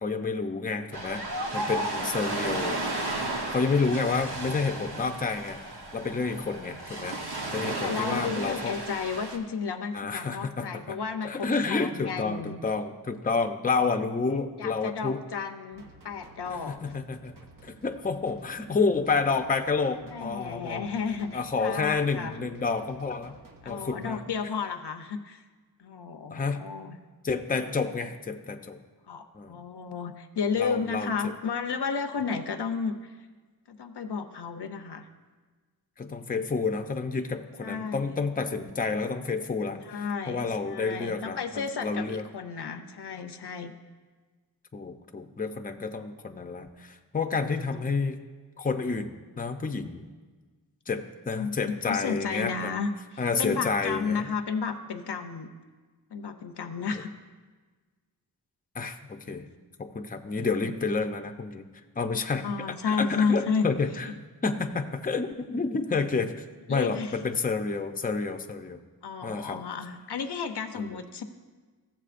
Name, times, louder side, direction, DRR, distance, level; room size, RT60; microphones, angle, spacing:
voice 1, 0.0-1.2 1.5-2.8 3.5-5.6 5.9-7.2 7.5-8.7 9.9-11.0 11.2-15.2 16.5-17.3 17.6-20.8 21.3-23.4 23.7-24.5 26.3-26.6 27.2-28.8 29.3-29.6 30.6-31.3 36.0-42.2 44.7-48.2 48.6-50.0 50.9-52.8 53.2-54.3 58.7-59.5 59.8-61.6 62.0-62.4 62.9-64.1 64.4-66.3 66.7-68.8 69.2-69.6 70.7-70.9, left 4 dB, 20° left, 5 dB, 0.6 m, -29 dB
Ocean, 0.9-9.4, right 2 dB, 75° right, 1.1 m, -33 dB
voice 2, 7.8-12.6 14.6-16.9 20.1-22.3 23.6-25.4 25.8-27.0 29.1-33.1 33.7-35.1 37.6-38.2 39.9-43.7 51.3-55.5 56.1-57.1 62.4-63.7 64.0-64.1 66.7-67.1 69.0-71.2, left 5 dB, 75° left, 7 dB, 0.7 m, -32 dB
sound 1, 15.7-24.2, right 2 dB, 55° right, 0.9 m, -54 dB
16.0 x 7.3 x 2.5 m, 1.4 s
wide cardioid pair, 75°, 40 cm